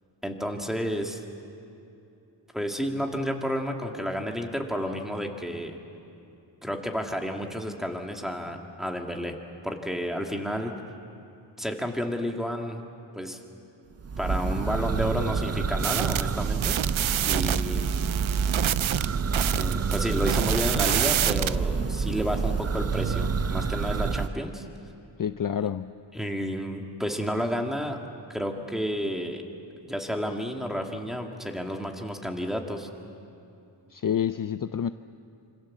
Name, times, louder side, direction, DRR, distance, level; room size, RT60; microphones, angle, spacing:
voice 1, 0.2-1.2 2.5-5.8 6.6-9.4 9.6-10.7 11.6-12.8 13.2-13.4 14.2-16.8 17.2-18.0 19.5-24.7 26.1-28.0 28.3-29.4 29.8-32.9, equal, ahead, 2 dB, 2.1 m, -31 dB
Church bell, 14.0-24.3, right 5 dB, 35° right, 0.6 m, -28 dB
sound 1, 15.8-21.6, right 10 dB, 85° right, 0.6 m, -27 dB
voice 2, 25.2-25.9 33.9-34.9, left 8 dB, 45° left, 11 dB, 0.5 m, -28 dB
27.0 x 25.5 x 7.4 m, 2.8 s
wide cardioid pair, 120°, 46 cm